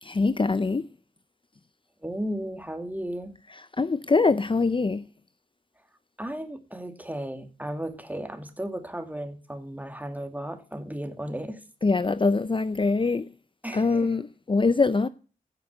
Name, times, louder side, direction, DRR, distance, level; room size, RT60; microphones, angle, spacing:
voice 1, 0.0-0.9 3.5-5.1 11.8-13.3 13.7-15.1, left 3 dB, 35° left, 0.6 m, -23 dB
voice 2, 2.0-3.3 6.2-11.6 13.6-14.2, right 1 dB, 10° right, 2.6 m, -35 dB
16.5 x 7.0 x 6.4 m
wide cardioid pair, 60°, 15 cm